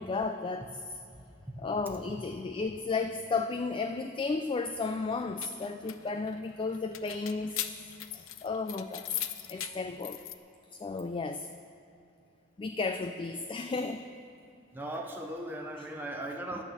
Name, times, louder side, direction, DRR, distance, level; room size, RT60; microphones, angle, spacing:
voice 1, 0.0-1.0 1.6-7.8 8.1-9.2 9.5-10.2 10.7-11.5 12.6-14.0 15.8-15.9, left 4 dB, 25° left, 8 dB, 0.3 m, -34 dB
voice 2, 1.1-1.6 14.7-16.6, right 1 dB, 10° right, 0 dB, 0.6 m, -38 dB
sound 1, 5.1-10.3, left 12 dB, 85° left, 0.5 m, -40 dB
10.5 x 6.3 x 7.5 m, 2.7 s
head